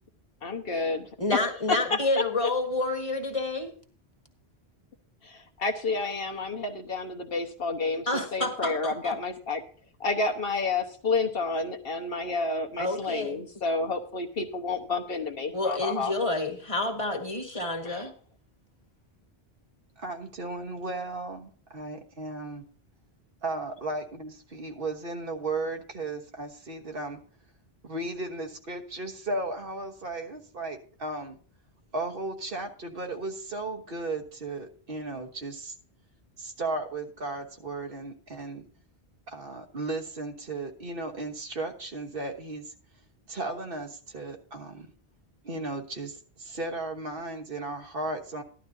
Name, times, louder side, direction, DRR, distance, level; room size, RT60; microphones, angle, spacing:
voice 1, 0.4-1.4 1.7-2.2 5.2-9.6 10.0-16.1 17.8-18.1, left 3 dB, 65° left, 3 dB, 1.3 m, -30 dB
voice 2, 1.2-3.7 8.1-9.2 12.8-13.4 15.5-18.1, left 2 dB, 30° left, 3 dB, 1.8 m, -29 dB
voice 3, 20.0-22.6 23.4-27.2 27.8-31.4 31.9-35.7 36.4-38.6 39.3-42.7 43.3-44.9 45.4-48.4, right 2 dB, 60° right, 4 dB, 1.5 m, -35 dB
13.0 x 11.5 x 2.7 m, 0.43 s
omnidirectional pair, 1.0 m